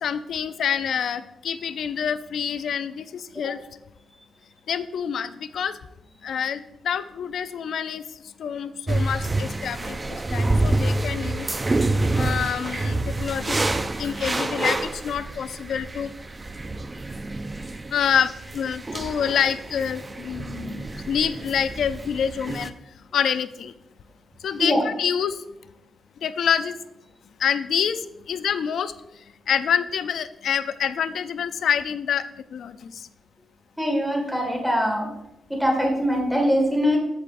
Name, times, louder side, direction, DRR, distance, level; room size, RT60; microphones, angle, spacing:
voice 1, 0.0-3.6 4.7-5.8 6.2-8.0 8.4-11.5 12.1-13.6 14.0-16.1 17.9-22.7 23.1-23.7 24.4-25.4 26.2-26.7 27.4-28.9 29.5-32.3 32.5-33.0, left 8 dB, 65° left, 13 dB, 0.4 m, -27 dB
sound 1, 8.9-22.7, right 2 dB, 20° right, 0.4 m, -27 dB
voice 2, 33.8-35.1 35.5-37.0, equal, ahead, 0 dB, 1.8 m, -22 dB
13.5 x 8.0 x 2.6 m, 0.91 s
wide cardioid pair, 155°, 0 cm